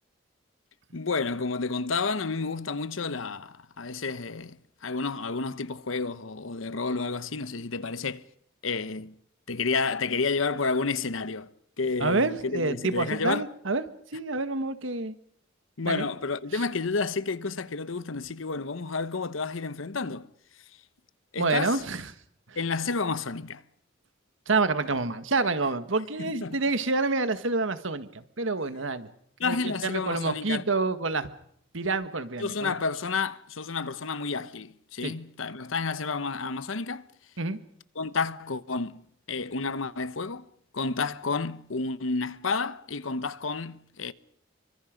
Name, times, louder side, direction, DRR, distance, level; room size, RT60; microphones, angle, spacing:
voice 1, 0.9-8.2 8.6-9.1 9.5-11.5 11.8-13.5 15.8-20.3 21.3-21.8 22.6-23.6 26.2-26.6 29.4-30.6 32.4-37.0 38.0-40.5 40.7-44.1, left 4 dB, 80° left, 1.0 m, -30 dB
voice 2, 12.0-15.1 15.8-16.0 16.5-16.6 21.4-22.0 22.5-22.6 24.5-29.1 29.4-31.3 31.7-32.7 35.0-35.1 37.4-37.6, right 3 dB, 70° right, 1.6 m, -28 dB
28.5 x 24.5 x 5.2 m
head